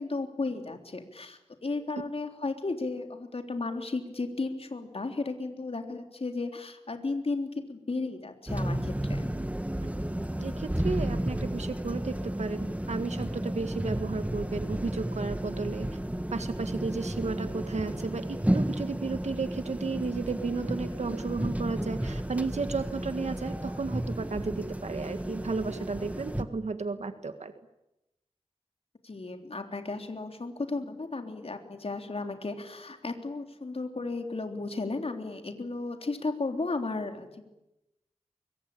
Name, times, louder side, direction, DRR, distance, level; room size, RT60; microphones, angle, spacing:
voice 1, 0.0-9.3 29.0-37.5, left 3 dB, 60° left, 5 dB, 3.6 m, -34 dB
sound 1, 8.5-26.4, right 1 dB, 10° right, 1.6 m, -33 dB
voice 2, 10.4-16.0 16.3-27.5, right 4 dB, 85° right, 9 dB, 1.8 m, -33 dB
24.5 x 24.5 x 8.7 m, 0.90 s
wide cardioid pair, 65°, 11 cm